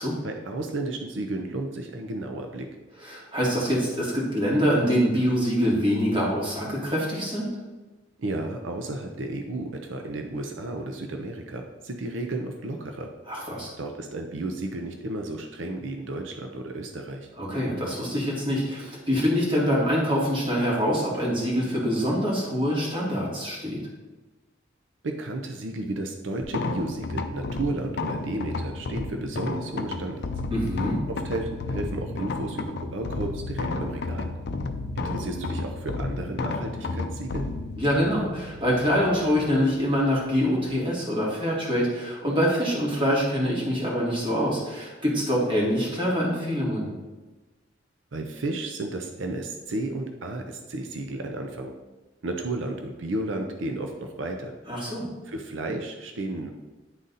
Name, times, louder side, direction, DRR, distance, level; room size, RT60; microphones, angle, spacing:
voice 1, 0.2-2.7 8.2-13.1 13.8-17.3 25.0-30.3 31.1-34.3 35.0-37.5 48.1-51.7 52.2-54.5 55.3-56.5, right 2 dB, 90° right, 4 dB, 0.6 m, -33 dB
voice 2, 3.0-7.5 13.3-13.7 17.4-23.8 30.5-31.0 37.8-46.9 54.7-55.1, equal, 25° right, -5 dB, 2.2 m, -25 dB
sound 1, 26.4-40.7, left 3 dB, 60° left, 0.5 m, -33 dB
9.7 x 3.8 x 4.1 m, 1.2 s
head